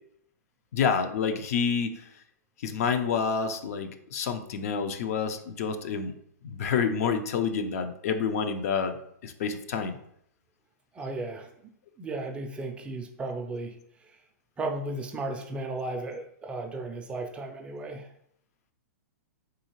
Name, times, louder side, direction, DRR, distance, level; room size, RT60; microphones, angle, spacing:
voice 1, 0.7-2.0 2.6-6.1 6.4-10.0, left 6 dB, 60° left, 8 dB, 0.4 m, -28 dB
voice 2, 10.9-11.7 12.0-14.2 14.6-18.1, right 2 dB, 10° right, 3 dB, 0.3 m, -35 dB
3.8 x 2.8 x 2.9 m, 0.71 s
hypercardioid pair, 145°, 9 cm